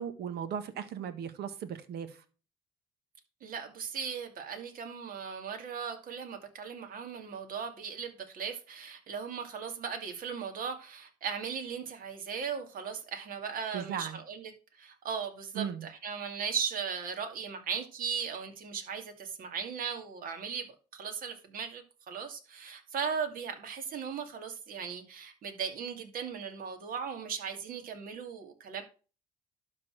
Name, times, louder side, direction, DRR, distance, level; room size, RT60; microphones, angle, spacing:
voice 1, 0.0-2.2 13.7-14.2 15.5-15.9, right 8 dB, 75° right, 1.6 m, -37 dB
voice 2, 3.4-20.7 20.9-28.8, right 6 dB, 55° right, 2.4 m, -37 dB
12.0 x 4.2 x 6.2 m
cardioid pair, 110°, 17 cm